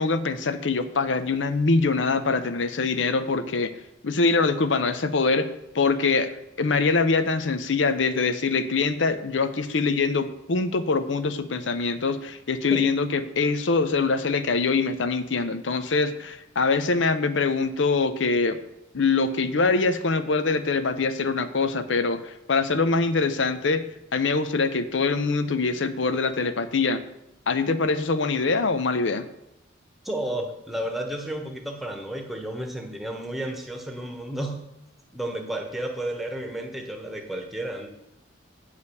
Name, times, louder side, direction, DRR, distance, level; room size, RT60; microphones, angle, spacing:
voice 1, 0.0-3.7 4.0-6.3 6.6-18.6 18.9-23.9 24.1-27.0 27.5-29.3, left 4 dB, 75° left, 11 dB, 0.7 m, -24 dB
voice 2, 30.0-34.6 35.1-37.9, right 1 dB, ahead, 2 dB, 1.1 m, -32 dB
8.3 x 5.0 x 7.1 m, 0.87 s
head